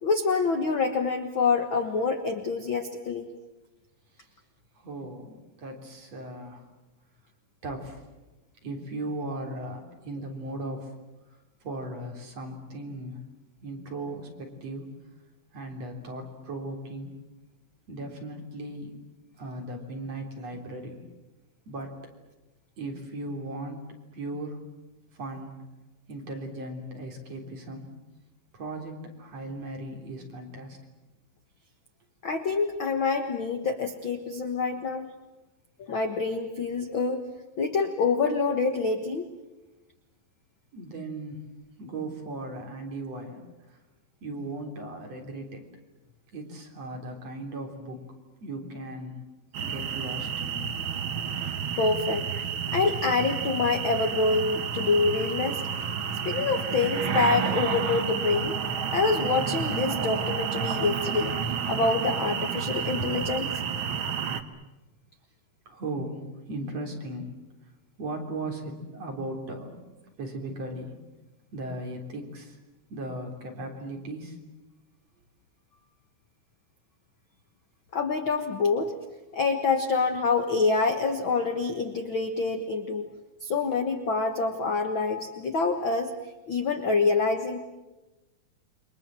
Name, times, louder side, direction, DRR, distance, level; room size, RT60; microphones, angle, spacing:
voice 1, 0.0-3.3 32.2-35.1 35.8-37.2 37.6-39.3 51.8-52.3 52.7-55.6 56.2-58.6 58.9-61.4 61.7-63.5 77.9-78.9 79.3-83.1 83.4-86.1 86.5-87.6, left 4 dB, 55° left, 6 dB, 1.5 m, -26 dB
voice 2, 4.7-6.6 7.6-8.0 8.6-10.9 11.3-13.2 13.6-14.9 15.5-17.1 17.9-19.0 19.4-21.0 21.7-22.0 22.8-23.8 24.1-24.6 25.1-25.5 26.1-27.9 28.5-30.8 40.7-41.4 41.8-43.8 44.2-45.6 46.3-48.0 48.4-49.2 49.6-50.7 56.1-56.7 63.0-63.2 65.7-67.3 68.0-69.8 70.2-71.0 71.5-72.6 72.9-74.4, right 1 dB, 45° right, 1 dB, 4.5 m, -37 dB
sound 1, 49.5-64.4, right 7 dB, 60° right, 1.3 m, -30 dB
29.0 x 24.0 x 7.6 m, 1.1 s
omnidirectional pair, 4.2 m